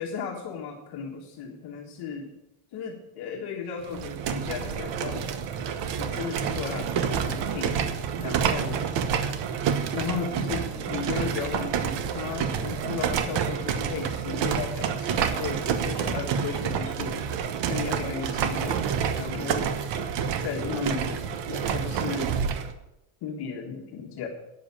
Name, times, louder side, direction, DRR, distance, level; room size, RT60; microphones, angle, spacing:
voice 1, 0.0-2.3 2.7-5.3 6.0-7.9 8.2-8.9 9.9-17.3 17.7-18.9 19.2-19.7 20.4-22.3 23.2-24.3, left 6 dB, 50° left, 0 dB, 1.7 m, -35 dB
sound 1, 3.8-22.7, right 7 dB, 55° right, 1.2 m, -28 dB
9.7 x 7.5 x 8.5 m, 0.92 s
cardioid pair, 150°, 49 cm